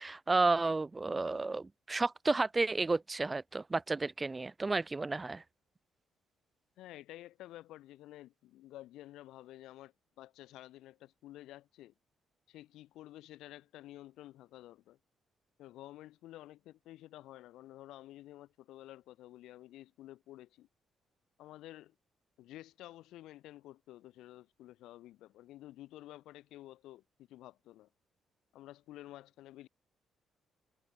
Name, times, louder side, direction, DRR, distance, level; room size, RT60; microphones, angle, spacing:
voice 1, 0.0-5.4, right 3 dB, 25° right, 0.4 m, -32 dB
voice 2, 6.8-11.9 12.5-15.0 15.6-20.7 21.4-21.9 22.4-27.0 27.3-27.9 28.5-29.7, left 15 dB, 90° left, 0.8 m, -51 dB
cardioid pair, 90°, 0 cm